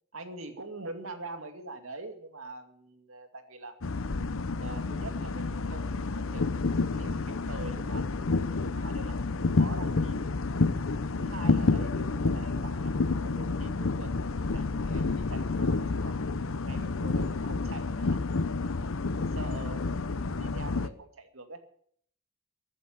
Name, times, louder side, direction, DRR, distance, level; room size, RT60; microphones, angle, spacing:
voice 1, 0.1-3.8 4.6-9.2 9.6-10.3 11.2-16.2 16.6-18.2 19.3-21.6, right 2 dB, 90° right, 6 dB, 2.5 m, -44 dB
sound 1, 3.8-20.9, left 3 dB, 80° left, 0.8 m, -29 dB
15.0 x 9.2 x 9.4 m, 0.62 s
head